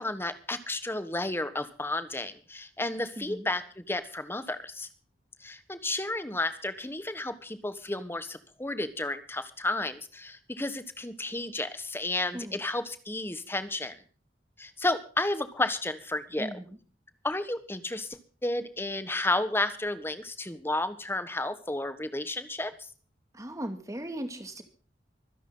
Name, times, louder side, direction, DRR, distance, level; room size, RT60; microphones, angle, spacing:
voice 1, 0.0-4.9 5.4-14.0 14.6-16.5 17.2-22.9, left 2 dB, 15° left, 11 dB, 1.3 m, -32 dB
voice 2, 3.2-3.5 12.3-12.6 16.4-16.8 23.3-24.6, right 1 dB, 20° right, 7 dB, 2.3 m, -38 dB
25.0 x 10.5 x 3.9 m, 0.41 s
head